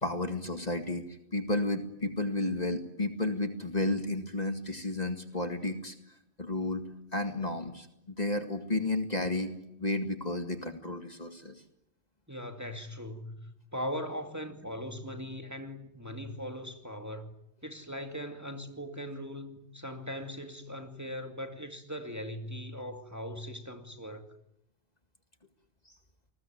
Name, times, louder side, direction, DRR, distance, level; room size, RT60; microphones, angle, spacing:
voice 1, 0.0-5.9 6.4-6.8 7.1-9.5 9.8-11.5, left 2 dB, 35° left, 2.2 m, -32 dB
voice 2, 12.3-17.3 17.6-24.3, equal, 15° right, 2.3 m, -40 dB
29.0 x 20.5 x 9.3 m
omnidirectional pair, 1.2 m